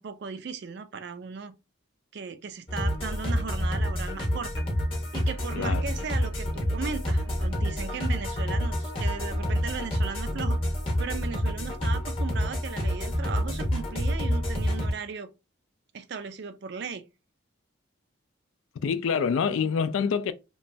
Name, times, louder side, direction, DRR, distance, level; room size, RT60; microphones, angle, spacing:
voice 1, 0.0-1.5 2.1-4.5 5.1-10.6 11.0-15.3 15.9-17.0, right 5 dB, 55° right, 0.4 m, -37 dB
sound 1, 2.7-14.9, equal, 25° left, 0.8 m, -28 dB
voice 2, 18.8-20.3, left 6 dB, 75° left, 0.3 m, -26 dB
2.9 x 2.2 x 2.6 m
head